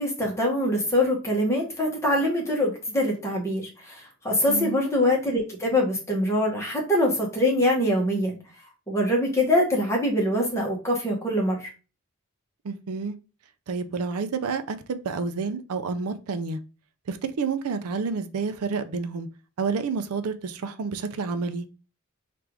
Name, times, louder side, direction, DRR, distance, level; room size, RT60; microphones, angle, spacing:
voice 1, 0.0-8.4 8.9-11.7, left 1 dB, 15° left, 1.1 m, -24 dB
voice 2, 12.6-13.2 13.7-16.6 17.1-19.3 19.6-21.7, right 4 dB, 85° right, 0.5 m, -29 dB
3.4 x 2.5 x 4.5 m
head